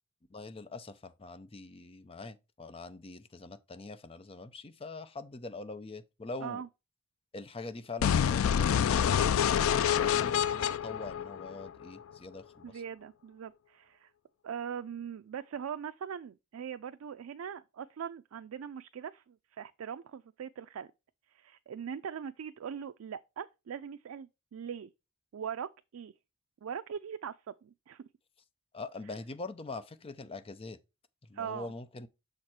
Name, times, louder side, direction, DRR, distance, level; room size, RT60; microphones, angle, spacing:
voice 1, 0.3-6.6 7.3-12.8 28.7-30.8 31.3-32.1, left 3 dB, 30° left, 0.5 m, -43 dB
sound 1, 8.0-12.0, left 8 dB, 85° left, 0.3 m, -27 dB
voice 2, 12.6-14.1 14.4-20.9 21.3-24.9 25.3-26.1 26.6-28.0 31.3-31.7, right 7 dB, 85° right, 0.4 m, -41 dB
6.5 x 4.4 x 4.7 m
head